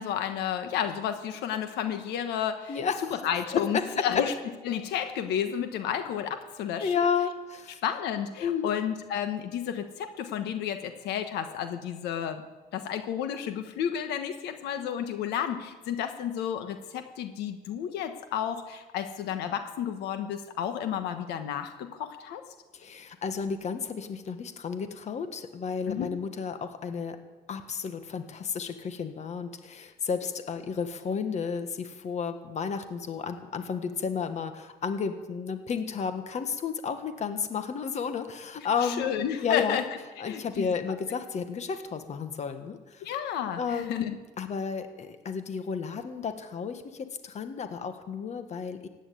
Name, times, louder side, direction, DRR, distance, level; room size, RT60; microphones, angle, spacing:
voice 1, 0.0-2.8 3.2-4.3 4.6-6.9 7.8-12.4 12.7-22.4 25.9-26.1 38.7-39.8 40.3-40.7 43.0-44.1, left 9 dB, 85° left, 8 dB, 1.4 m, -31 dB
voice 2, 2.7-3.2 3.5-4.0 6.8-7.8 8.4-8.7 22.7-27.2 27.5-39.1 39.4-39.8 40.2-43.1 43.5-48.9, left 6 dB, 45° left, 8 dB, 1.5 m, -32 dB
16.0 x 9.2 x 9.3 m, 1.3 s
cardioid pair, 110°, 17 cm